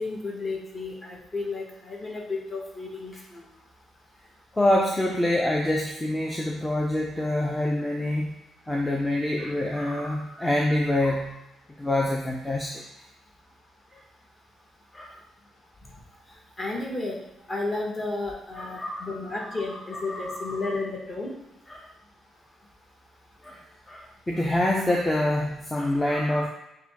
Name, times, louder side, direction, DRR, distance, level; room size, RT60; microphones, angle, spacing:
voice 1, 0.0-3.4 16.6-17.2 17.5-21.3, left 3 dB, 30° left, -2 dB, 1.2 m, -32 dB
voice 2, 4.5-8.3 8.7-11.4 11.8-12.8 14.9-15.1 18.6-19.3 19.7-20.8 21.7-21.9 23.4-23.6 23.9-26.5, left 1 dB, 10° left, -1 dB, 0.5 m, -26 dB
6.2 x 2.2 x 3.4 m, 0.89 s
cardioid pair, 110°, 0 cm